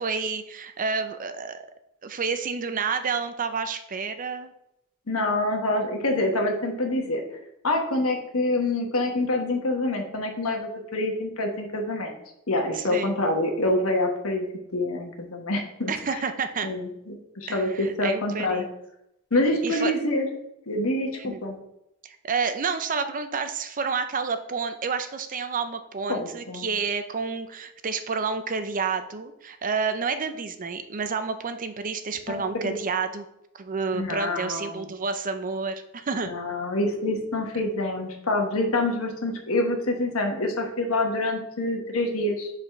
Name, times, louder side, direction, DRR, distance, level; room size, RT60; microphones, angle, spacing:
voice 1, 0.0-1.6 2.0-4.5 12.7-13.2 15.9-16.7 17.5-18.7 19.6-19.9 21.1-21.4 22.0-33.3 33.5-36.3, right 5 dB, 40° right, 9 dB, 0.5 m, -29 dB
voice 2, 5.1-7.2 7.6-12.1 12.5-15.9 16.6-18.6 19.3-20.4 20.7-21.6 26.1-26.7 32.3-32.8 33.9-34.8 36.3-42.5, left 2 dB, 75° left, 3 dB, 1.4 m, -26 dB
5.0 x 4.2 x 5.8 m, 0.81 s
head